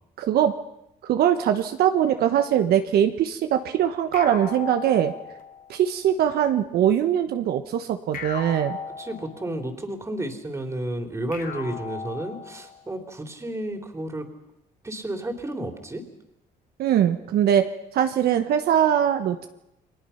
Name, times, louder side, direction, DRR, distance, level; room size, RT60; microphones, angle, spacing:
voice 1, 0.2-0.5 1.0-5.1 5.7-8.8 16.8-17.6 17.9-19.5, right 10 dB, 65° right, 7 dB, 1.3 m, -22 dB
sound 1, 4.1-5.8 8.1-9.7 11.3-12.8, left 6 dB, 55° left, 3.4 m, -37 dB
voice 2, 9.0-14.3 14.8-16.0, right 1 dB, 15° right, 5 dB, 3.3 m, -32 dB
30.0 x 22.0 x 5.8 m, 0.84 s
cardioid pair, 110°, 17 cm